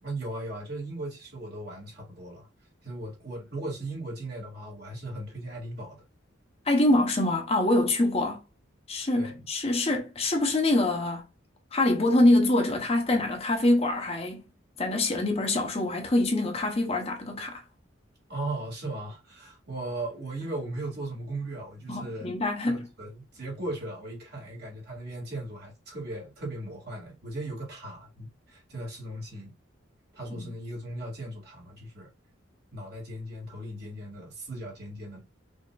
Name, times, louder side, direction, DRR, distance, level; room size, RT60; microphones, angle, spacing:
voice 1, 0.0-2.5 2.8-6.0 9.2-9.5 18.3-22.3 22.6-29.5 30.1-32.1 32.7-35.2, right 2 dB, 50° right, 2.2 m, -37 dB
voice 2, 6.7-8.4 8.9-11.2 11.7-14.5 14.8-17.6 21.9-22.9 30.3-30.4, left 1 dB, 30° left, 0.9 m, -25 dB
5.4 x 2.9 x 2.4 m
head